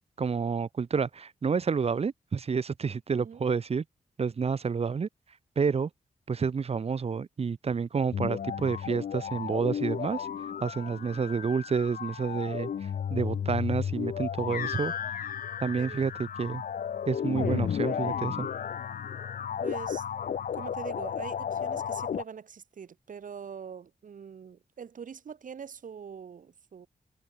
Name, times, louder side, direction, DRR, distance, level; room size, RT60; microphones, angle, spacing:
voice 1, 0.2-3.8 4.2-5.1 5.6-5.9 6.3-10.3 10.6-14.9 15.6-16.6 17.1-18.5, right 5 dB, 45° right, 0.9 m, -29 dB
voice 2, 3.1-3.4 15.8-16.1 18.2-18.5 19.6-20.0 20.5-26.9, right 7 dB, 70° right, 3.0 m, -43 dB
sound 1, 8.1-22.2, left 8 dB, 85° left, 3.0 m, -33 dB
cardioid pair, 80°, 14 cm